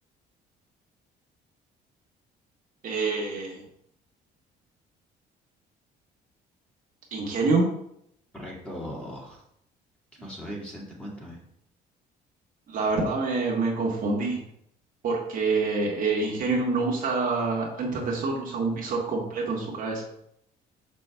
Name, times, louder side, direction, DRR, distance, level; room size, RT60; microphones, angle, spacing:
voice 1, 2.8-3.6 7.1-7.7 12.7-14.4 15.0-20.0, right 3 dB, 55° right, -2 dB, 1.5 m, -26 dB
voice 2, 8.3-9.4 10.2-11.4, equal, 5° left, -4 dB, 2.0 m, -38 dB
6.0 x 5.4 x 3.5 m, 0.74 s
cardioid pair, 110°, 17 cm